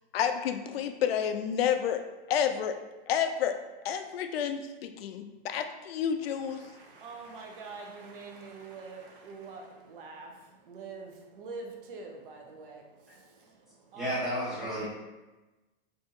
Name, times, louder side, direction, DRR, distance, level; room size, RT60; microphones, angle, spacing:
voice 1, 0.1-2.0 2.3-2.8 3.1-3.6 3.8-6.6, left 8 dB, 85° left, 7 dB, 0.5 m, -30 dB
voice 2, 6.2-14.2, right 4 dB, 65° right, 2 dB, 0.7 m, -45 dB
voice 3, 13.9-14.8, equal, ahead, -10 dB, 0.4 m, -32 dB
2.7 x 2.6 x 3.7 m, 1.1 s
supercardioid pair, 175°, 29 cm